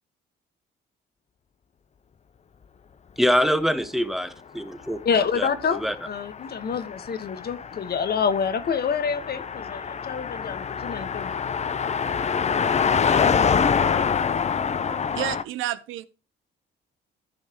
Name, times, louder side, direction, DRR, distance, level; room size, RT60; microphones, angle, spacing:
voice 1, 3.2-5.0 5.3-5.9, equal, ahead, 1.1 m, -24 dB
voice 2, 5.0-11.3, left 6 dB, 55° left, 1.2 m, -27 dB
Car passing by, 5.3-15.4, left 6 dB, 35° left, 0.6 m, -26 dB
voice 3, 15.2-16.1, right 12 dB, 90° right, 0.7 m, -29 dB
14.0 x 5.6 x 2.9 m
cardioid pair, 90°, 20 cm